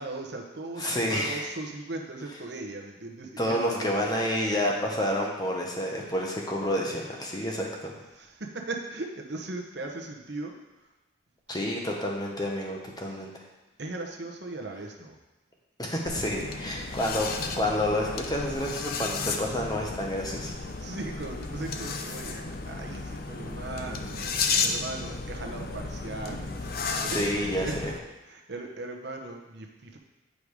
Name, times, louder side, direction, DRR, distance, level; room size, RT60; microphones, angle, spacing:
voice 1, 0.0-4.2 7.3-7.6 8.1-10.6 13.1-13.3 13.8-15.2 17.0-17.2 20.8-26.7 27.0-27.8 28.2-30.0, right 2 dB, 60° right, 2 dB, 1.0 m, -38 dB
voice 2, 0.8-1.4 3.4-7.9 11.5-13.4 15.8-17.3 17.6-20.5 27.1-27.9, left 1 dB, 20° left, -1 dB, 1.1 m, -29 dB
sound 1, 16.1-28.0, left 4 dB, 50° left, 0.6 m, -33 dB
8.6 x 5.2 x 4.8 m, 1.1 s
head